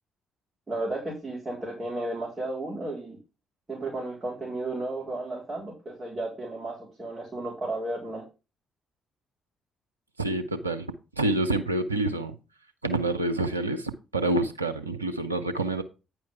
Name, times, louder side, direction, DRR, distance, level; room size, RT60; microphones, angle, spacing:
voice 1, 0.7-3.2 3.7-8.2, right 2 dB, 25° right, 3.8 m, -33 dB
voice 2, 10.2-10.9 11.2-12.4 12.8-15.8, right 2 dB, 90° right, 0.7 m, -27 dB
9.6 x 4.6 x 5.6 m
figure-of-eight pair, 45°, 0 cm